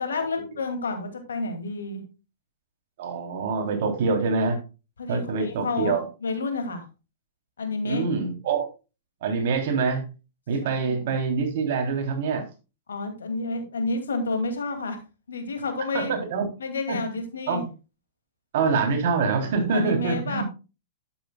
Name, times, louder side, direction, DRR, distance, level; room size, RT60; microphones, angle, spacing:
voice 1, 0.0-2.0 5.0-6.9 7.6-8.1 10.6-11.1 12.9-15.0 15.3-16.1 16.6-17.6 19.7-20.4, left 3 dB, 75° left, 5 dB, 2.4 m, -30 dB
voice 2, 3.0-4.6 5.1-6.0 7.8-8.7 9.2-10.0 10.5-12.4 15.9-16.5 16.9-17.0 17.5-17.6 18.5-20.4, right 4 dB, 55° right, 3 dB, 3.2 m, -25 dB
11.5 x 8.9 x 2.3 m, 0.30 s
figure-of-eight pair, 110°, 0 cm